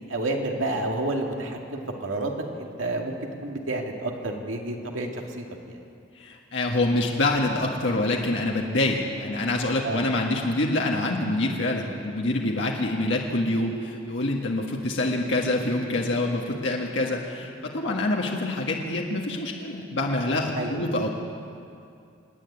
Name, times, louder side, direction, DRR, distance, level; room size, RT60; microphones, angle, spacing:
voice 1, 0.1-2.3 2.6-5.8 9.8-10.0 20.5-20.8, right 2 dB, 85° right, 1 dB, 2.2 m, -30 dB
voice 2, 6.2-21.1, left 2 dB, 70° left, -1 dB, 1.7 m, -26 dB
26.0 x 10.0 x 9.8 m, 2.5 s
head